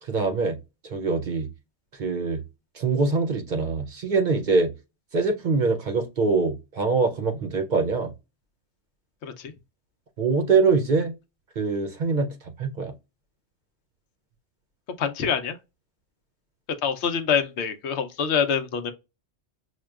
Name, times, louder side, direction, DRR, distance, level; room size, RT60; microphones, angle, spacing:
voice 1, 0.0-0.6 0.9-1.5 2.0-2.4 2.7-4.7 5.1-8.1 10.2-11.1 11.6-12.9, right 4 dB, 55° right, 0.6 m, -24 dB
voice 2, 9.2-9.5 15.0-15.6 16.8-18.9, left 7 dB, 80° left, 0.9 m, -25 dB
6.3 x 2.2 x 2.3 m
omnidirectional pair, 1.2 m